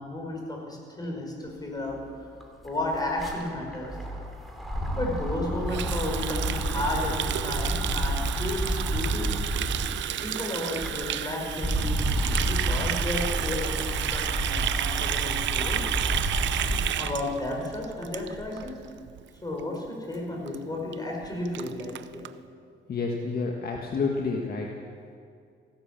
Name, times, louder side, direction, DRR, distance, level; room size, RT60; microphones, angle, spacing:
voice 1, 0.0-2.3 2.6-4.0 4.9-9.4 10.2-15.8 16.3-16.4 17.0-18.7 19.4-22.3, left 1 dB, 20° left, 0 dB, 5.0 m, -33 dB
sound 1, 1.9-2.0 2.2-10.0 10.5-17.0 17.5-18.7, right 1 dB, ahead, 2.7 m, -30 dB
Water tap faucet, 5.7-18.7 19.0-19.2 19.5-19.9 20.1-20.2 20.5-20.6 20.9-21.0 21.2-22.3, right 11 dB, 65° right, 0.6 m, -31 dB
voice 2, 22.9-24.7, left 4 dB, 50° left, 1 dB, 1.6 m, -29 dB
15.0 x 12.0 x 7.5 m, 2.3 s
cardioid pair, 90°, 20 cm